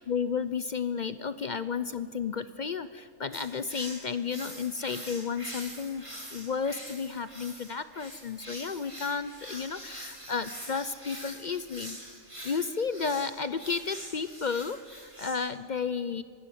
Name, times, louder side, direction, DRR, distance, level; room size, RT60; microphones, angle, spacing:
voice 1, 0.0-12.0 12.4-16.2, left 5 dB, 55° left, 13 dB, 0.5 m, -32 dB
sound 1, 3.3-15.3, right 1 dB, 20° right, 4.1 m, -44 dB
24.5 x 13.5 x 9.9 m, 2.1 s
omnidirectional pair, 1.5 m